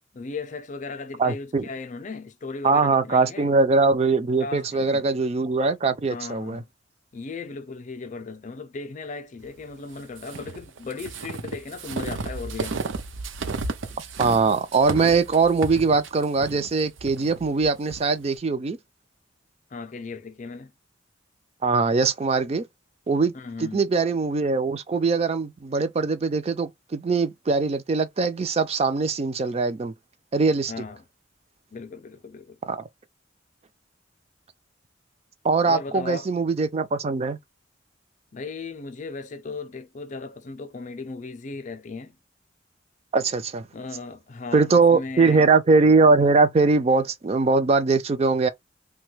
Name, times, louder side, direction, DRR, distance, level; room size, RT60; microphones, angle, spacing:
voice 1, 0.1-3.5 4.4-5.0 6.1-6.7 7.1-12.9 19.7-20.7 23.3-23.8 30.7-31.1 31.7-32.6 35.6-36.3 38.3-42.2 43.7-45.5, left 4 dB, 40° left, 0.4 m, -36 dB
voice 2, 1.2-1.7 2.6-6.6 14.2-18.8 21.6-22.6 23.1-23.3 23.6-29.9 30.3-30.7 32.7-32.8 35.4-37.4 43.1-43.7 44.5-48.5, right 4 dB, 30° right, 0.4 m, -21 dB
sound 1, 10.1-18.0, right 4 dB, 90° right, 0.6 m, -33 dB
2.9 x 2.2 x 3.2 m
head